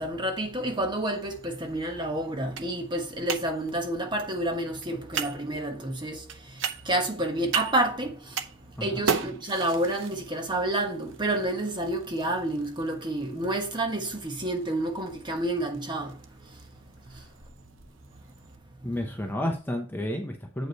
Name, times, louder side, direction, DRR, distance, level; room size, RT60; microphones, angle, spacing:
voice 1, 0.0-6.2 6.8-8.4 8.8-16.2, right 1 dB, 20° right, 1.3 m, -29 dB
sound 1, 0.7-18.6, right 6 dB, 65° right, 0.8 m, -39 dB
voice 2, 8.8-9.1 18.8-20.7, left 1 dB, 10° left, 0.9 m, -31 dB
8.1 x 5.1 x 4.0 m
head